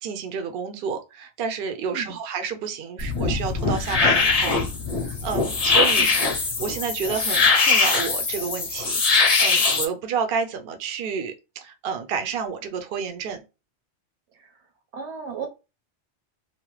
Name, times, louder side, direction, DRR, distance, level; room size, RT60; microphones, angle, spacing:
voice 1, 0.0-4.6 5.0-6.1 6.6-13.4, right 6 dB, 65° right, 0.7 m, -30 dB
voice 2, 1.8-2.2 5.9-6.1 14.3-14.5 14.9-15.5, right 6 dB, 80° right, 1.1 m, -35 dB
sound 1, 3.0-9.8, left 4 dB, 40° left, 0.7 m, -21 dB
2.8 x 2.1 x 3.0 m
omnidirectional pair, 1.2 m